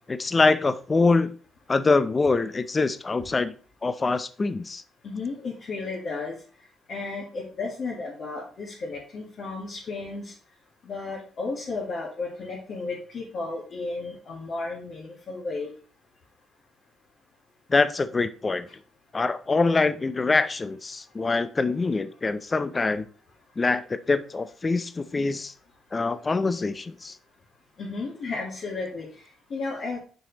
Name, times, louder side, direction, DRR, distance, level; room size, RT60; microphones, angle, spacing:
voice 1, 0.1-1.3 1.7-3.5 3.8-4.8 17.7-18.7 19.1-23.0 23.6-25.5 25.9-27.1, left 3 dB, 30° left, 12 dB, 0.5 m, -24 dB
voice 2, 5.0-6.4 6.9-10.3 10.8-15.7 27.8-30.0, left 3 dB, 55° left, -5 dB, 2.0 m, -33 dB
6.3 x 5.0 x 4.0 m, 0.40 s
cardioid pair, 90°, 0 cm